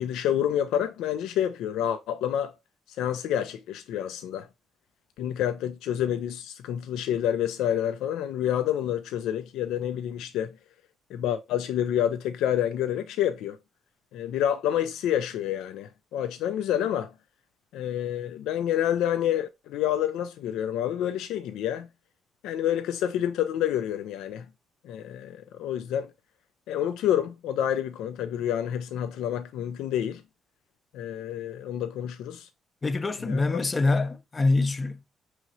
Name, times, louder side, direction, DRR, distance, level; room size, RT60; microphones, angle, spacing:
voice 1, 0.0-2.5 2.9-4.5 5.2-10.5 11.1-13.6 14.1-17.1 17.7-21.9 22.4-24.5 24.8-26.1 26.7-30.2 30.9-32.5 33.2-33.6, left 10 dB, 90° left, 0.3 m, -28 dB
voice 2, 32.8-35.0, left 3 dB, 30° left, 0.5 m, -25 dB
5.6 x 3.0 x 2.6 m
cardioid pair, 90°, 0 cm